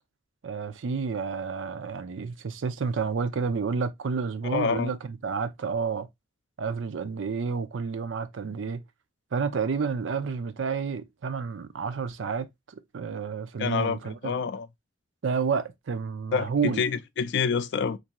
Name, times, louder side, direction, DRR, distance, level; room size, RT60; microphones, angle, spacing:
voice 1, 0.4-6.1 6.6-8.8 9.3-14.4 15.2-16.8, right 5 dB, 80° right, 0.5 m, -30 dB
voice 2, 4.5-4.9 13.6-14.7 16.3-18.0, left 5 dB, 65° left, 0.4 m, -27 dB
3.4 x 2.6 x 2.9 m
head